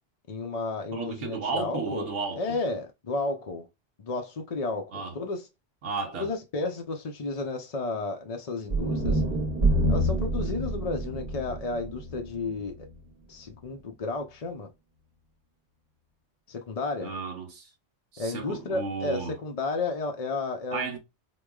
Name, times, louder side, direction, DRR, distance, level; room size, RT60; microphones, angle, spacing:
voice 1, 0.3-2.1 2.4-3.7 4.0-5.5 6.1-9.2 9.9-12.9 13.3-14.7 16.5-17.1 18.2-20.9, left 3 dB, 45° left, 0.5 m, -32 dB
voice 2, 0.9-2.6 4.9-5.2 5.8-6.3 17.0-17.7 18.1-19.3 20.7-21.0, right 4 dB, 85° right, 1.2 m, -33 dB
sound 1, 8.7-12.9, right 1 dB, 45° right, 1.2 m, -27 dB
4.7 x 2.2 x 2.3 m
omnidirectional pair, 1.2 m